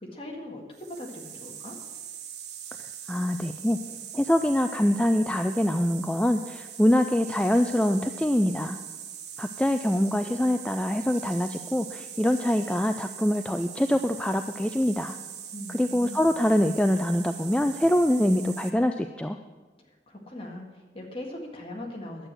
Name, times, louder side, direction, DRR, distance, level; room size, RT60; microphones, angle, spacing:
voice 1, 0.0-1.8 15.5-16.4 19.9-22.3, left 1 dB, 30° left, 0 dB, 1.8 m, -40 dB
sound 1, 0.7-18.7, right 8 dB, 75° right, 1.0 m, -41 dB
voice 2, 3.1-3.8 4.1-8.8 9.4-15.2 15.7-19.4, left 1 dB, 5° left, 7 dB, 0.3 m, -24 dB
11.0 x 8.0 x 7.6 m, 1.3 s
head